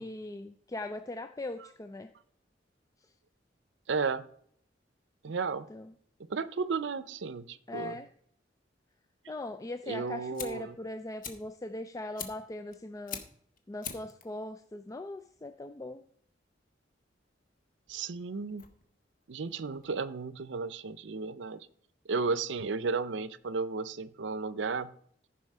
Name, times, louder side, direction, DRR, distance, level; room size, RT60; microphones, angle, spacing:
voice 1, 0.0-2.1 5.7-5.9 7.7-8.1 9.3-13.2 13.7-16.0, left 2 dB, 20° left, 9 dB, 0.4 m, -40 dB
voice 2, 3.9-4.2 5.2-5.7 6.3-8.0 9.9-10.7 17.9-18.6 19.3-21.7 22.1-24.9, right 4 dB, 85° right, 16 dB, 0.6 m, -33 dB
Fire, 9.9-20.4, left 7 dB, 50° left, 1.3 m, -47 dB
14.0 x 5.5 x 5.5 m, 0.64 s
head